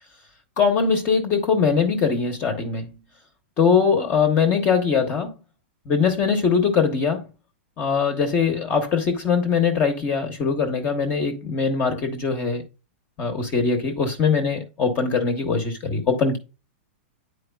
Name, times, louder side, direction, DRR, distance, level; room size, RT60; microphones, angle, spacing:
voice 1, 0.6-2.9 3.6-5.3 5.9-7.3 7.8-12.6 13.2-16.4, left 5 dB, 25° left, 1.0 m, -21 dB
9.1 x 4.6 x 2.3 m
supercardioid pair, 155°, 6 cm